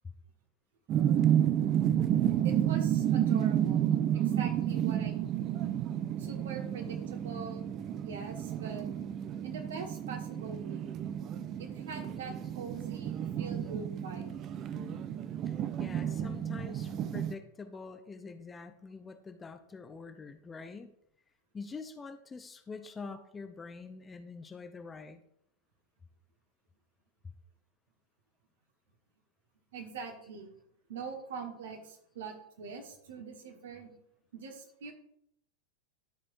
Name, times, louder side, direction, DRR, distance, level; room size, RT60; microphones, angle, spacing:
sound 1, 0.9-17.3, right 10 dB, 35° right, 0.5 m, -31 dB
voice 1, 2.4-5.5 6.2-7.7 8.0-8.9 9.4-10.9 11.6-14.4 16.7-16.8 29.7-30.5 30.9-33.9 34.3-34.9, right 5 dB, 60° right, 4 dB, 1.5 m, -43 dB
voice 2, 14.7-15.0 15.4-20.9 21.5-25.2, left 4 dB, 15° left, 9 dB, 0.5 m, -45 dB
12.5 x 5.1 x 2.6 m, 0.73 s
figure-of-eight pair, 90°, 0 cm